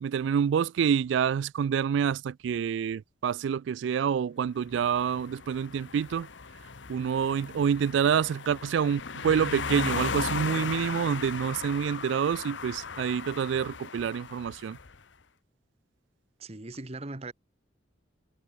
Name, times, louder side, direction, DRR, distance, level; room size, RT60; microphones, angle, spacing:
voice 1, 0.0-6.3 6.9-14.8, right 7 dB, 75° right, 0.3 m, -27 dB
sound 1, 4.7-15.0, left 5 dB, 75° left, 1.1 m, -37 dB
voice 2, 16.4-17.3, right 2 dB, 35° right, 1.1 m, -39 dB
head